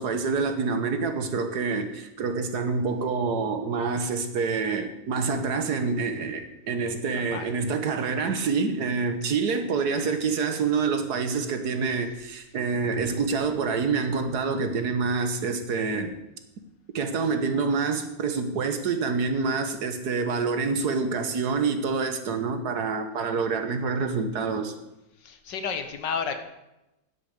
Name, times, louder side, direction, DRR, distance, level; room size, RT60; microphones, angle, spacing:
voice 1, 0.0-16.1 16.9-24.7, right 4 dB, 65° right, 8 dB, 1.7 m, -27 dB
voice 2, 7.1-7.5 9.2-9.4 25.2-26.4, left 6 dB, 85° left, 7 dB, 1.9 m, -32 dB
9.9 x 8.4 x 8.2 m, 0.92 s
omnidirectional pair, 1.9 m